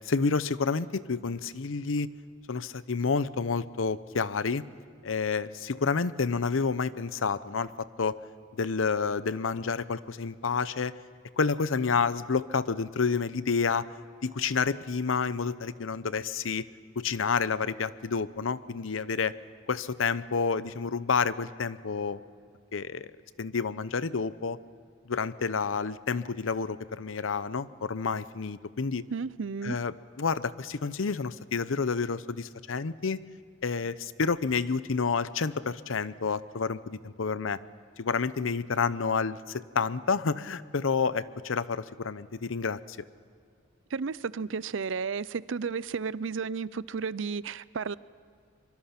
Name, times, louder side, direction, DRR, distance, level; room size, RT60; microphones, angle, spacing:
voice 1, 0.1-2.1 2.5-4.6 5.0-7.7 8.0-8.1 8.6-10.9 11.4-13.9 14.2-16.6 17.0-19.3 19.7-22.2 22.7-23.1 23.4-24.6 25.1-29.0 29.6-33.2 33.6-37.6 38.0-43.0, left 5 dB, 85° left, 16 dB, 0.7 m, -29 dB
voice 2, 29.1-29.8 43.9-48.0, right 5 dB, 75° right, 19 dB, 0.5 m, -33 dB
24.5 x 23.5 x 5.9 m, 2.2 s
head